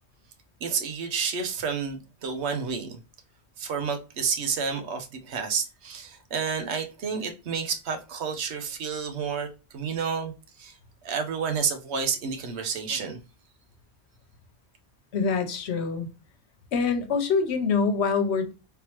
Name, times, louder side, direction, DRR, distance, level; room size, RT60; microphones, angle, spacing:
voice 1, 0.6-3.0 3.6-10.8 11.0-13.2, right 6 dB, 85° right, 1.0 m, -30 dB
voice 2, 15.1-16.1 16.7-18.5, left 5 dB, 85° left, 1.0 m, -25 dB
3.5 x 3.0 x 2.9 m
omnidirectional pair, 1.1 m